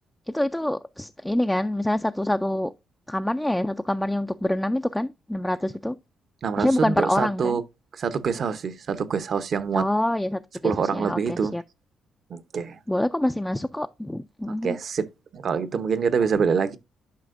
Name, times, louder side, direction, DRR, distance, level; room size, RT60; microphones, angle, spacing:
voice 1, 0.3-2.7 3.1-6.0 6.6-7.6 9.7-11.6 12.9-14.8, left 1 dB, 5° left, 0.3 m, -26 dB
voice 2, 6.4-7.6 7.9-9.9 10.6-11.5 12.3-12.8 14.6-16.8, right 6 dB, 55° right, 0.8 m, -25 dB
11.0 x 4.9 x 2.5 m
cardioid pair, 90°, 0 cm